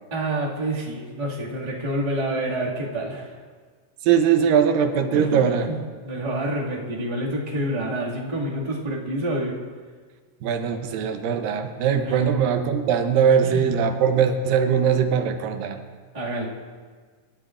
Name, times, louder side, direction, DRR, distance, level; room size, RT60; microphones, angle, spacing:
voice 1, 0.1-3.3 5.1-9.5 12.0-12.2 13.4-13.6 16.1-16.5, right 1 dB, 15° right, -5 dB, 1.4 m, -28 dB
voice 2, 4.0-5.7 10.4-15.8, right 7 dB, 85° right, 6 dB, 2.6 m, -21 dB
26.0 x 12.0 x 2.5 m, 1.5 s
omnidirectional pair, 3.9 m